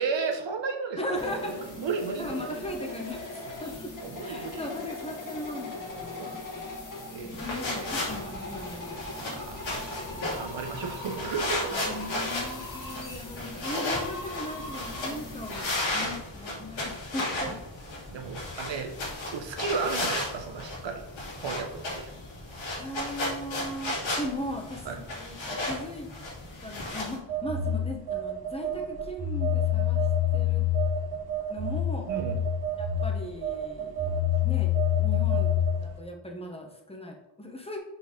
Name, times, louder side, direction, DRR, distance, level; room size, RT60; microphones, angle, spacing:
voice 1, 0.0-1.2 1.5-2.5 4.0-4.7 6.1-6.4 7.1-7.9 9.2-11.8 12.1-12.2 15.9-16.1 17.4-17.5 18.1-18.9 19.3-21.0 21.3-22.1 24.8-25.0 32.1-32.4, right 5 dB, 75° right, 4 dB, 0.9 m, -34 dB
voice 2, 1.0-1.5 2.2-6.7 7.2-9.1 10.2-10.6 11.7-17.7 18.7-18.9 22.7-26.1 26.6-30.0 30.3-30.7 31.5-32.1 32.8-37.8, left 1 dB, 15° left, 2 dB, 1.2 m, -38 dB
sound 1, 1.1-15.7, left 2 dB, 45° left, 2.0 m, -40 dB
sound 2, 7.3-27.2, left 1 dB, 90° left, 2.4 m, -34 dB
Telephone, 27.3-35.9, left 6 dB, 55° right, 1.6 m, -27 dB
5.4 x 4.4 x 5.3 m, 0.89 s
wide cardioid pair, 115°, 45 cm